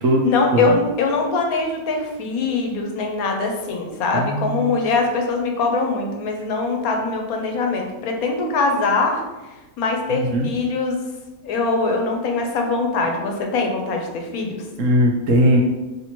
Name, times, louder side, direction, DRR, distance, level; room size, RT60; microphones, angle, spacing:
voice 1, 0.2-9.2 9.8-11.0 11.4-14.6, left 3 dB, 85° left, 2 dB, 1.2 m, -22 dB
voice 2, 4.1-4.8 10.2-10.5 14.8-15.6, equal, 70° right, 1 dB, 1.0 m, -19 dB
3.3 x 2.9 x 4.2 m, 1.1 s
omnidirectional pair, 1.5 m